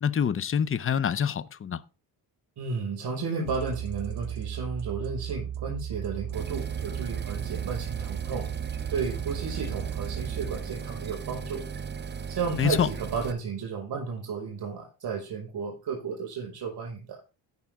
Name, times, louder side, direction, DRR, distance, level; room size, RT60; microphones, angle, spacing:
voice 1, 0.0-1.8 12.6-12.9, left 8 dB, 30° left, 0.7 m, -26 dB
voice 2, 2.6-8.5 8.9-11.6 12.3-17.2, right 5 dB, 60° right, 5.7 m, -33 dB
sound 1, 3.5-11.3, right 10 dB, 80° right, 1.1 m, -35 dB
sound 2, 6.3-13.3, right 6 dB, 25° right, 0.9 m, -37 dB
16.5 x 5.8 x 3.6 m
cardioid pair, 90°, 43 cm